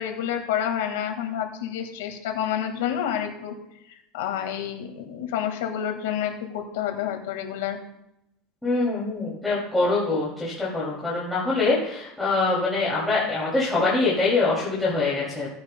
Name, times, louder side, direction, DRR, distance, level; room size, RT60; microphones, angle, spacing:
voice 1, 0.0-3.5 4.1-7.8, left 9 dB, 90° left, 5 dB, 1.7 m, -29 dB
voice 2, 8.6-15.5, left 3 dB, 5° left, -9 dB, 2.6 m, -24 dB
16.0 x 9.5 x 2.2 m, 0.82 s
supercardioid pair, 145°, 0 cm